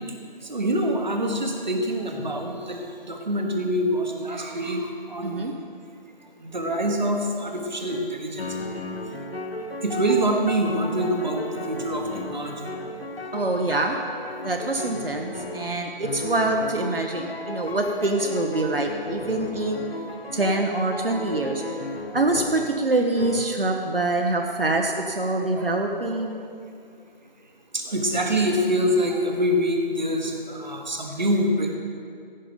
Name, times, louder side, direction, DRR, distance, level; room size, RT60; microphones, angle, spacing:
voice 1, 0.5-2.8 3.1-5.5 6.5-8.5 9.8-12.0 12.3-12.5 27.7-31.8, equal, 50° right, 2 dB, 1.2 m, -25 dB
voice 2, 5.2-5.5 13.3-14.0 14.4-19.8 20.3-21.6 22.1-26.4, right 2 dB, 70° right, 3 dB, 1.0 m, -25 dB
sound 1, 7.9-8.1 8.4-22.8 23.2-23.4, left 2 dB, 80° left, 1.2 m, -35 dB
15.5 x 5.6 x 5.2 m, 2.3 s
figure-of-eight pair, 170°, 29 cm